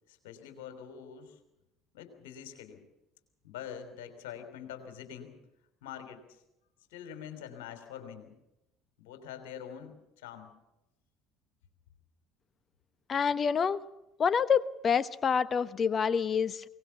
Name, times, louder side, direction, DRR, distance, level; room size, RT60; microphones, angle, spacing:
voice 1, 0.1-1.4 1.9-2.8 3.4-5.4 5.8-6.4 6.9-8.3 9.0-10.5, left 9 dB, 65° left, 8 dB, 3.4 m, -45 dB
voice 2, 13.1-13.8 14.2-16.6, left 6 dB, 35° left, 16 dB, 1.1 m, -27 dB
22.5 x 19.0 x 7.0 m, 0.90 s
figure-of-eight pair, 55°, 0 cm